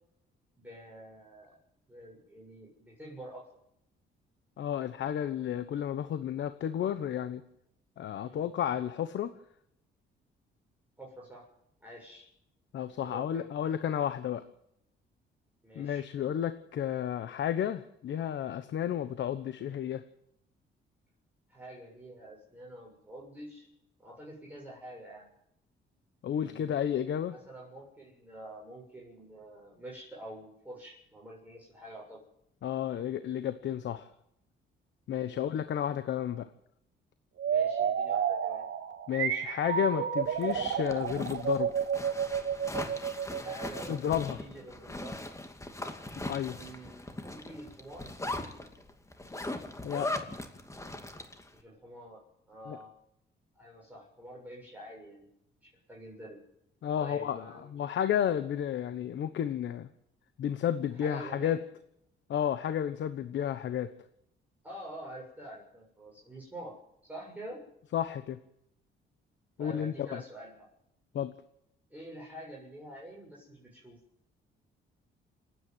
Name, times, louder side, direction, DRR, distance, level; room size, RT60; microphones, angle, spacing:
voice 1, 0.6-1.6 1.9-3.5 8.2-8.5 11.0-11.5 11.8-12.3 13.0-13.5 15.6-16.0 19.6-19.8 21.5-23.7 24.0-25.3 26.3-26.8 27.3-32.2 35.2-35.5 37.5-38.7 43.4-45.3 46.5-48.1 51.5-52.2 52.5-52.9 53.5-55.3 55.6-56.4 57.0-57.7 61.0-61.6 64.6-66.8 67.0-67.6 69.6-70.6 71.9-74.0, right 1 dB, 10° right, -4 dB, 7.4 m, -47 dB
voice 2, 4.6-7.4 8.0-9.3 12.7-14.4 15.7-20.0 26.2-27.3 32.6-34.1 35.1-36.5 39.1-41.7 43.9-44.4 46.3-46.6 49.8-50.1 52.7-52.8 56.8-59.9 60.4-61.6 62.3-63.9 67.9-68.4 69.6-70.2 71.1-71.3, left 9 dB, 65° left, 11 dB, 1.1 m, -32 dB
sound 1, 37.4-44.1, right 8 dB, 70° right, 2.1 m, -31 dB
Zipper (clothing), 40.3-51.5, left 2 dB, 15° left, 2.4 m, -40 dB
29.0 x 9.8 x 9.2 m, 0.78 s
cardioid pair, 90°, 20 cm